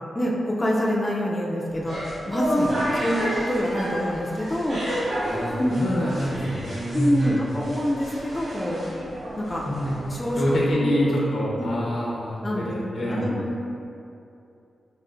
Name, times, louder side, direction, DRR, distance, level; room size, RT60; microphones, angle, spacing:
voice 1, 0.2-2.0 2.3-4.8 5.6-5.7 6.9-8.8 9.4-9.7 10.1-10.4 10.7-11.2 11.6-11.7 12.4-13.6, equal, 15° left, -4 dB, 0.3 m, -26 dB
sound 1, 1.7-10.7, equal, 65° right, 1.1 m, -32 dB
voice 2, 5.2-7.5 9.6-10.0 10.4-13.4, equal, 80° left, -6 dB, 0.9 m, -26 dB
4.9 x 2.5 x 2.4 m, 2.7 s
wide cardioid pair, 155°, 0 cm